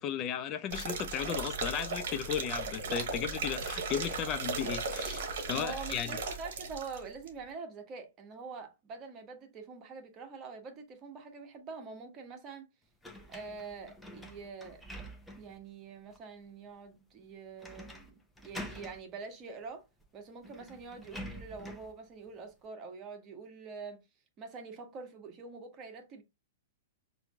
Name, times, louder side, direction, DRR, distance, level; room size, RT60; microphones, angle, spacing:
voice 1, 0.0-6.1, left 8 dB, 35° left, 0.5 m, -35 dB
sound 1, 0.7-7.0 7.3-7.4, right 4 dB, 60° right, 1.1 m, -36 dB
voice 2, 5.5-12.7 13.3-14.8 15.4-19.8 20.1-24.0 24.4-26.2, right 4 dB, 30° right, 1.2 m, -45 dB
sound 2, 13.0-15.6 16.1-16.2 17.6-18.1 18.4-19.0 20.0-20.1 20.4-21.9, equal, 5° left, 0.8 m, -46 dB
5.6 x 2.7 x 2.3 m
figure-of-eight pair, 110°, 0 cm